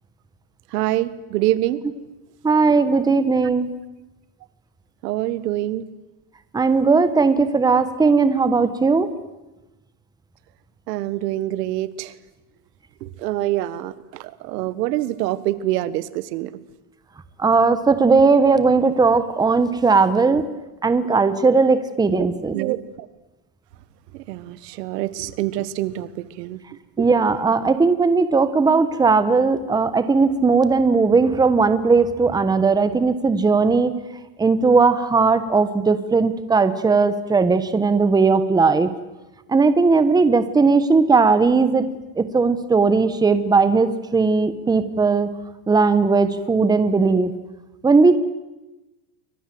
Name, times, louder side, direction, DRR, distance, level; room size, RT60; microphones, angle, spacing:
voice 1, 0.7-1.8 5.0-5.8 10.9-12.1 13.0-16.5 20.3-20.4 22.1-22.8 24.1-26.6 27.0-27.1, right 15 dB, 80° right, 16 dB, 1.6 m, -25 dB
voice 2, 2.4-3.7 6.5-9.1 17.4-20.4 20.8-22.6 27.0-33.9 34.4-38.9 39.5-41.9 42.2-45.3 45.7-47.3 47.8-48.2, right 4 dB, 10° right, 12 dB, 1.2 m, -17 dB
29.0 x 24.5 x 7.9 m, 1.1 s
supercardioid pair, 150°, 48 cm